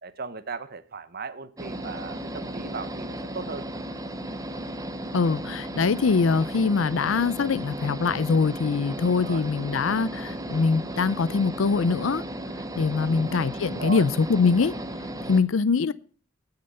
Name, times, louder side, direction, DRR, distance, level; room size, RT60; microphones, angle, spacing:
voice 1, 0.0-3.6 9.2-9.5 13.0-13.4 13.7-14.1 15.1-15.2, right 4 dB, 55° right, 1.0 m, -37 dB
sound 1, 1.6-15.4, right 1 dB, 20° right, 0.9 m, -35 dB
voice 2, 5.1-12.2 12.8-14.7 15.3-15.9, left 4 dB, 80° left, 0.5 m, -23 dB
18.5 x 6.7 x 5.5 m
head